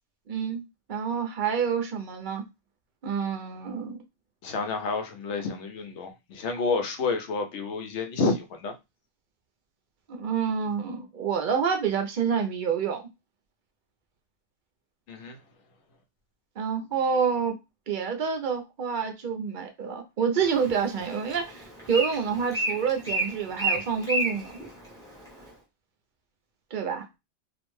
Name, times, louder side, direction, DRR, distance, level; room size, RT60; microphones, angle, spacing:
voice 1, 0.3-2.4 3.0-4.0 10.1-13.0 16.6-17.6 17.9-24.6 26.7-27.1, right 6 dB, 55° right, 0.6 m, -28 dB
voice 2, 4.4-8.7 15.1-15.4, left 4 dB, 85° left, 0.9 m, -29 dB
Bird, 20.4-25.5, right 2 dB, 5° left, 0.7 m, -32 dB
2.4 x 2.1 x 3.0 m
omnidirectional pair, 1.2 m